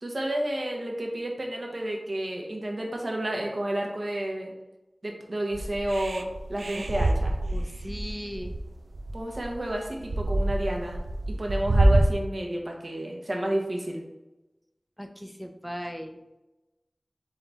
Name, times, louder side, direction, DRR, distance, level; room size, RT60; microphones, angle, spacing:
voice 1, 0.0-4.5 5.0-7.3 9.1-11.0 11.4-14.0, right 1 dB, 60° right, 1 dB, 0.9 m, -31 dB
sound 1, 5.5-12.1, right 1 dB, 85° right, 0.3 m, -26 dB
voice 2, 6.7-7.1 7.5-8.5 15.0-16.2, equal, ahead, 4 dB, 0.5 m, -37 dB
3.8 x 3.5 x 3.9 m, 1.0 s
wide cardioid pair, 60°, 0 cm